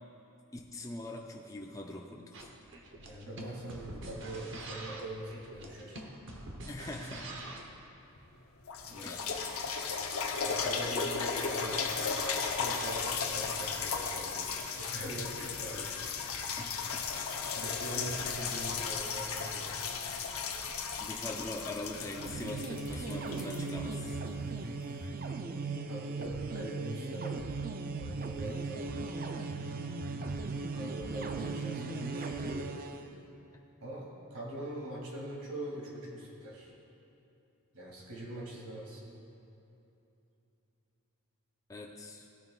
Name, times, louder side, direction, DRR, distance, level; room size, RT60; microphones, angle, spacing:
voice 1, 0.5-2.5 6.7-7.5 9.0-9.6 16.6-16.8 21.0-24.2 41.7-42.3, left 2 dB, 15° left, -1 dB, 0.5 m, -42 dB
sound 1, 2.3-7.7, right 1 dB, 55° right, 1.0 m, -45 dB
voice 2, 3.0-6.1 8.8-9.2 10.3-11.9 12.4-16.5 17.5-19.9 25.2-25.6 25.8-27.5 27.9-29.1 30.4-32.8 33.8-36.7 37.7-39.1, right 1 dB, 90° right, -3 dB, 2.4 m, -43 dB
sound 2, 8.2-8.3 8.7-24.4 25.0-25.1, left 5 dB, 75° left, 0.8 m, -35 dB
sound 3, 22.1-33.1, right 3 dB, 40° right, 0.4 m, -37 dB
17.0 x 9.4 x 2.4 m, 2.8 s
head